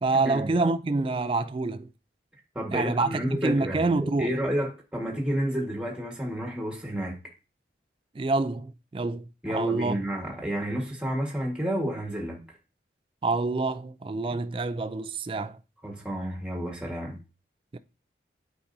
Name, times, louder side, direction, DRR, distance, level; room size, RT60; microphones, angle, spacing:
voice 1, 0.0-1.9 2.7-4.4 8.1-10.0 13.2-15.6 17.7-17.8, right 3 dB, 30° right, 0.3 m, -27 dB
voice 2, 2.5-7.2 9.4-12.4 15.8-17.2, equal, 5° right, 1.5 m, -30 dB
8.5 x 5.0 x 2.7 m
head